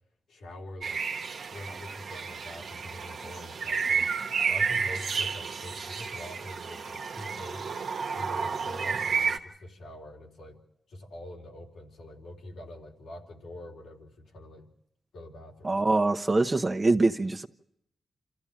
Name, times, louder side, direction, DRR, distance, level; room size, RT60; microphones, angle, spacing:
voice 1, 0.3-4.1 4.5-7.7 8.1-10.6 10.9-14.7 15.1-15.8, left 1 dB, 90° left, 3.8 m, -44 dB
sound 1, 0.8-9.4, right 5 dB, 70° right, 1.4 m, -31 dB
voice 2, 15.6-17.5, right 2 dB, 30° right, 1.1 m, -24 dB
27.0 x 14.5 x 8.8 m
cardioid pair, 65°, 0 cm